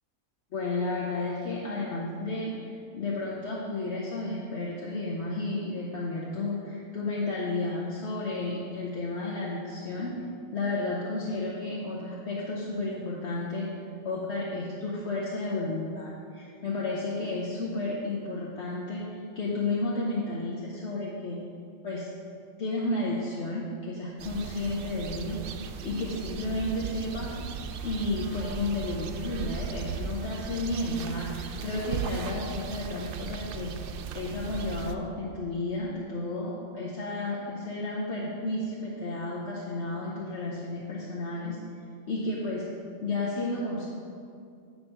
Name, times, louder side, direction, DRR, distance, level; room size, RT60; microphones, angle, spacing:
voice 1, 0.5-10.2 10.5-13.7 14.0-21.4 21.8-22.1 22.6-27.4 27.8-33.7 34.1-41.6 42.1-42.6 43.0-43.9, left 2 dB, 55° left, -4 dB, 1.2 m, -32 dB
sound 1, 24.2-34.9, right 6 dB, 70° right, 0.5 m, -37 dB
9.0 x 5.9 x 5.4 m, 2.3 s
omnidirectional pair, 1.4 m